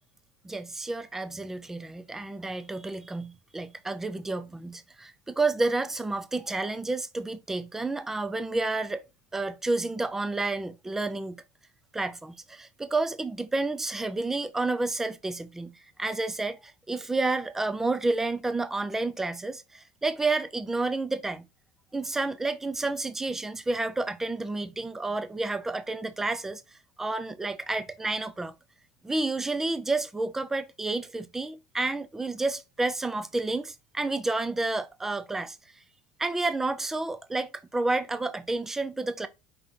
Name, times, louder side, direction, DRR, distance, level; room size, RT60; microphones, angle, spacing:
voice 1, 0.4-9.0 9.3-11.4 11.9-21.5 21.9-26.6 27.0-28.5 29.0-35.6 36.2-39.3, right 2 dB, 5° right, 0.3 m, -30 dB
5.1 x 2.9 x 3.6 m
cardioid pair, 160°, 5 cm